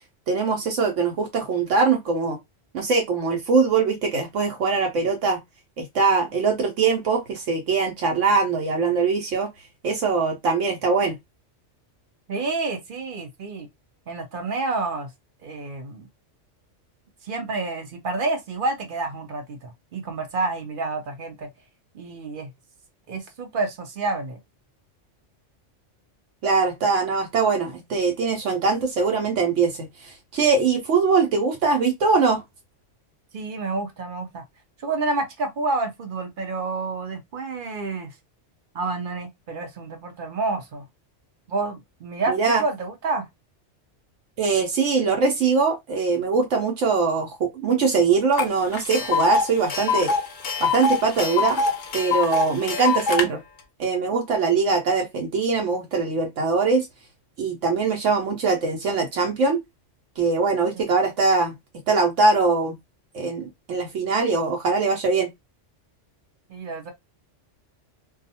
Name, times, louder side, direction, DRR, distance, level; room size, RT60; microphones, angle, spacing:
voice 1, 0.3-2.4 2.7-5.4 5.8-9.5 9.8-11.2 26.4-32.4 42.3-42.6 44.4-50.1 50.6-51.6 51.9-53.4 53.8-56.9 57.4-59.6 60.2-61.5 61.9-62.8 63.1-65.3, right 4 dB, 80° right, 1.0 m, -22 dB
voice 2, 12.3-13.7 14.1-15.1 15.4-16.1 17.2-21.5 21.9-22.5 23.1-24.4 33.3-34.4 34.8-38.1 38.7-40.9 41.5-43.3 53.2-53.3 60.7-60.8 66.5-66.9, right 3 dB, 55° right, 0.7 m, -29 dB
Tick, 48.4-48.5 48.7-53.2, left 4 dB, 55° left, 0.6 m, -24 dB
2.4 x 2.3 x 2.7 m
omnidirectional pair, 1.3 m